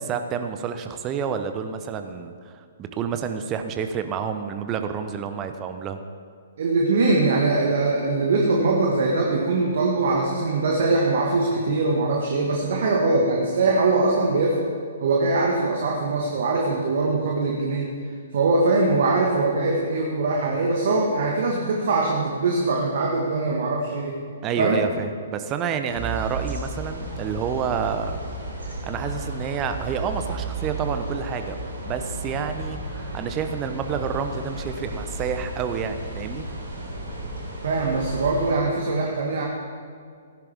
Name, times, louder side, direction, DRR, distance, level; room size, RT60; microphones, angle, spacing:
voice 1, 0.1-6.0 24.4-28.1 28.8-36.5, right 7 dB, 25° right, 8 dB, 0.9 m, -29 dB
voice 2, 6.6-14.6 15.0-17.9 18.3-24.2 24.6-24.8 37.6-39.5, right 3 dB, 55° right, -1 dB, 1.7 m, -22 dB
sound 1, 25.9-38.5, right 1 dB, 80° right, 3.6 m, -33 dB
16.0 x 10.5 x 3.6 m, 2.2 s
figure-of-eight pair, 120°, 0 cm